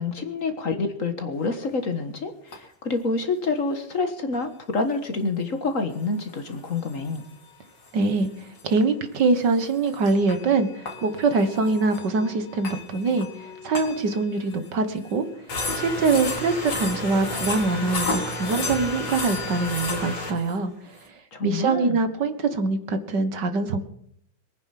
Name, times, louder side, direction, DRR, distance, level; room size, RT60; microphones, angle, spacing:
voice 1, 0.0-7.2 21.3-22.0, left 3 dB, 45° left, 7 dB, 1.7 m, -27 dB
sound 1, 1.7-1.8 2.5-2.6 4.3-4.4 6.3-7.5 7.8-8.0 8.3-8.4 8.6-8.7 9.5-14.7 15.0-15.1 15.5-20.6, left 2 dB, 70° left, 3.6 m, -32 dB
voice 2, 7.9-15.2 15.7-23.8, right 3 dB, 65° right, 9 dB, 2.0 m, -24 dB
22.5 x 9.8 x 5.8 m, 0.68 s
omnidirectional pair, 2.1 m